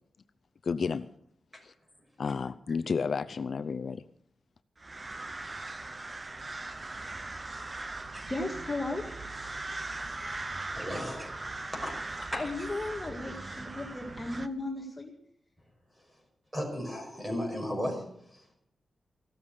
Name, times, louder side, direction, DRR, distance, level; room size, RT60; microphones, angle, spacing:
voice 1, 0.6-1.1 1.6-1.7 2.2-4.0, left 5 dB, 55° left, 12 dB, 0.6 m, -31 dB
sound 1, 4.8-14.5, right 2 dB, 30° right, 0.9 m, -40 dB
voice 2, 8.3-9.1 12.3-15.1, left 2 dB, 20° left, 1 dB, 1.9 m, -35 dB
voice 3, 10.4-11.3 11.7-12.3 12.6-12.7 16.5-18.4, equal, 15° right, 2 dB, 6.0 m, -36 dB
16.0 x 13.0 x 6.6 m, 0.71 s
wide cardioid pair, 110°, 0 cm